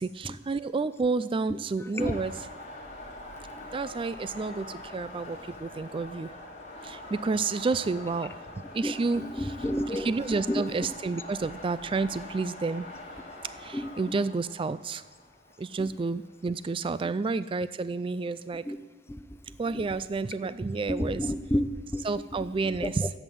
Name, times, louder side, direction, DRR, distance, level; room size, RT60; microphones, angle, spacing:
voice 1, 0.0-2.3 3.7-6.3 6.8-8.3 8.7-9.5 9.9-12.9 13.6-15.0 15.6-18.6 19.6-21.3 22.0-23.1, right 4 dB, 30° right, 15 dB, 0.3 m, -30 dB
sound 1, 2.0-16.8, left 1 dB, 35° left, 3.3 m, -44 dB
voice 2, 8.8-10.6 13.7-13.9 15.8-15.9 18.7-18.8 19.1-19.2 19.7-20.0 20.9-22.9, left 1 dB, 15° left, 9 dB, 0.7 m, -31 dB
14.5 x 8.1 x 9.2 m, 1.3 s
head